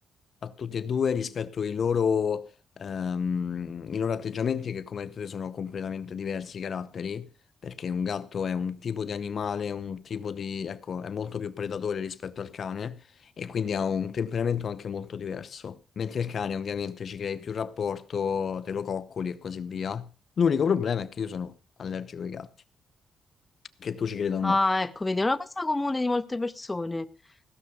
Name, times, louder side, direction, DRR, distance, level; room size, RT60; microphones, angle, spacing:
voice 1, 0.4-2.5 2.8-7.3 7.6-13.0 13.4-20.1 20.4-21.5 21.8-22.5 23.8-24.6, left 7 dB, 55° left, 0.8 m, -30 dB
voice 2, 24.4-27.1, left 2 dB, 20° left, 0.8 m, -27 dB
16.0 x 6.9 x 6.7 m
cardioid pair, 85°, 0 cm